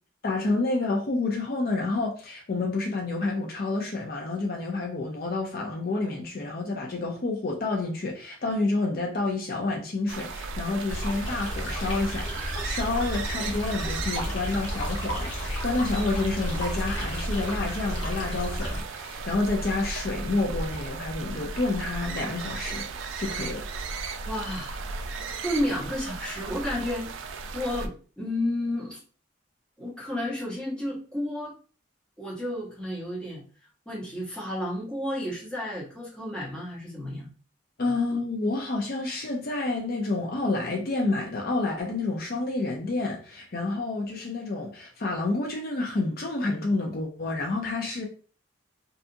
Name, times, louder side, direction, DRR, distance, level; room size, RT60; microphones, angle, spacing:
voice 1, 0.2-22.9 23.2-23.6 37.8-48.1, left 3 dB, 50° left, 0.5 m, -29 dB
sound 1, 10.1-27.9, right 4 dB, 75° right, 0.3 m, -36 dB
sound 2, 10.9-18.8, equal, 75° left, 1.0 m, -33 dB
voice 2, 24.2-24.9 25.4-27.1 27.5-29.0 29.8-31.5 32.2-33.4 33.9-37.3 37.8-37.9, left 1 dB, 5° left, 0.8 m, -31 dB
2.7 x 2.3 x 2.6 m
head